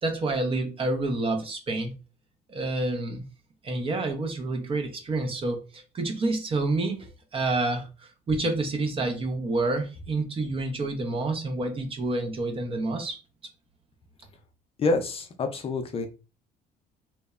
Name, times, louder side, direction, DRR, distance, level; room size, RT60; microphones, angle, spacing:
voice 1, 0.0-1.9 2.5-3.2 3.6-13.2, right 2 dB, 35° right, 0.6 m, -28 dB
voice 2, 14.8-16.1, left 3 dB, 35° left, 0.4 m, -27 dB
2.9 x 2.0 x 2.3 m
cardioid pair, 110°, 17 cm